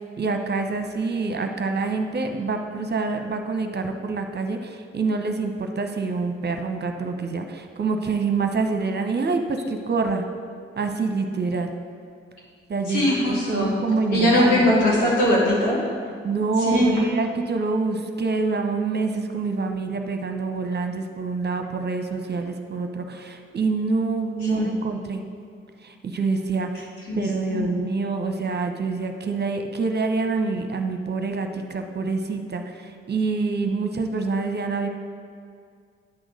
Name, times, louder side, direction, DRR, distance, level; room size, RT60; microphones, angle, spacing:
voice 1, 0.2-10.3 10.8-11.7 12.7-14.7 16.2-25.2 25.8-34.9, right 4 dB, 30° right, 5 dB, 0.9 m, -26 dB
voice 2, 12.9-13.7 14.1-15.9 16.6-17.0 24.5-24.7 27.1-27.8, left 1 dB, 70° left, -5 dB, 2.4 m, -21 dB
8.6 x 6.3 x 6.5 m, 2.2 s
figure-of-eight pair, 40°, 32 cm